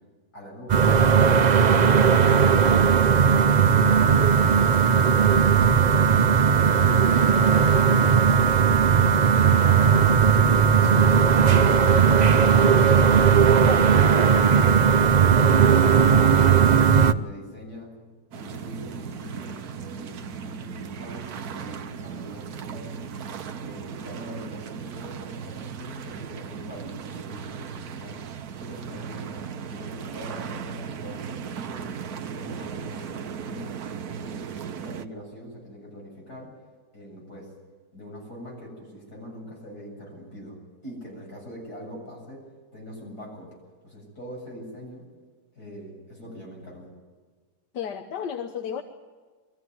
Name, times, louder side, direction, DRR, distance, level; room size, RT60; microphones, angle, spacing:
sound 1, 0.7-17.1, right 6 dB, 85° right, 0.3 m, -17 dB
voice 1, 3.6-5.2 5.6-6.3 6.8-8.1 9.2-12.8 14.5-17.9 18.3-23.0 23.6-28.2 28.6-29.4 29.7-33.8 34.1-36.5 36.9-37.5 37.9-40.6 40.8-42.4 42.7-43.6 43.8-45.0 45.5-46.9, equal, 65° left, -1 dB, 8.3 m, -42 dB
sound 2, 18.3-35.0, right 7 dB, 65° right, 1.4 m, -37 dB
voice 2, 47.7-48.8, left 8 dB, 90° left, 6 dB, 1.7 m, -32 dB
23.0 x 14.5 x 9.7 m, 1.5 s
omnidirectional pair, 1.8 m